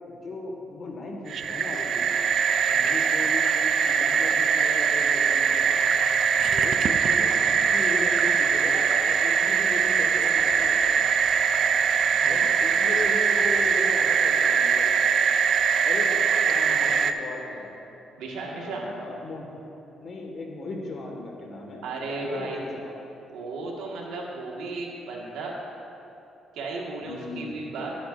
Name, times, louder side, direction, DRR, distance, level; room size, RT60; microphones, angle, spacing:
voice 1, 0.1-2.0 2.6-3.5 3.8-5.7 6.5-10.9 12.3-14.9 15.8-16.1 16.5-17.8 18.6-19.5 20.0-23.0 27.0-27.6, left 2 dB, 50° left, 0 dB, 1.6 m, -36 dB
sound 1, 1.3-17.1, right 6 dB, 60° right, 0.4 m, -22 dB
voice 2, 18.2-18.8 21.8-22.6 23.3-25.5 26.5-28.0, right 3 dB, 85° right, -3 dB, 1.6 m, -35 dB
12.5 x 9.1 x 2.5 m, 2.9 s
cardioid pair, 90°, 0 cm